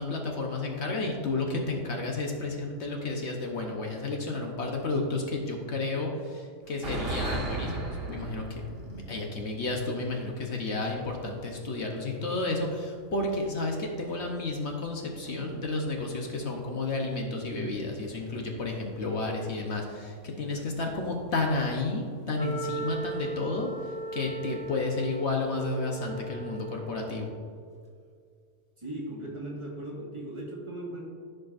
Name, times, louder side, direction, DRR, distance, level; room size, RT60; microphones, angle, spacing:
voice 1, 0.0-27.3, left 2 dB, 60° left, 1 dB, 1.2 m, -32 dB
sound 1, 6.6-11.3 11.6-11.7 12.8-13.0 15.2-16.5 17.5-17.7 18.1-18.2 18.7-18.8 20.6-20.7 21.4-21.5 23.9-24.1 24.7-25.0 25.5-26.1, right 2 dB, 50° right, 1.4 m, -38 dB
Wind instrument woodwind instrument, 22.3-27.5, right 2 dB, 5° left, 0.8 m, -38 dB
voice 2, 28.8-31.0, right 1 dB, 25° right, -4 dB, 1.6 m, -38 dB
14.5 x 5.2 x 2.5 m, 2.1 s
omnidirectional pair, 1.3 m